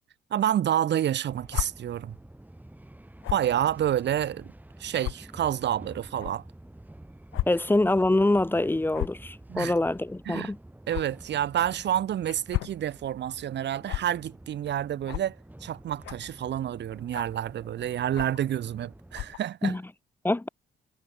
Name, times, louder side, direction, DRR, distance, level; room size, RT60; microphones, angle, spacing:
voice 1, 0.3-2.2 3.3-4.5 4.8-6.4 9.5-9.7 10.3-10.5 10.9-15.4 15.6-19.8, right 11 dB, 60° right, 1.1 m, -28 dB
sound 1, 1.3-19.3, right 1 dB, 10° right, 5.7 m, -49 dB
sound 2, 1.5-1.7 3.2-3.5 4.2-4.3 5.0-5.1 6.2-6.3 7.3-7.5 7.8-7.9 8.9-9.2 10.9-11.0 12.3-12.8 13.9-14.0 15.1-15.3 16.0-16.3 17.1-17.4 18.1-18.4 19.1-19.4, left 19 dB, 90° left, 0.5 m, -32 dB
voice 2, 7.5-10.6 19.6-19.8 20.2-20.5, left 2 dB, 10° left, 1.0 m, -24 dB
cardioid pair, 90°, 20 cm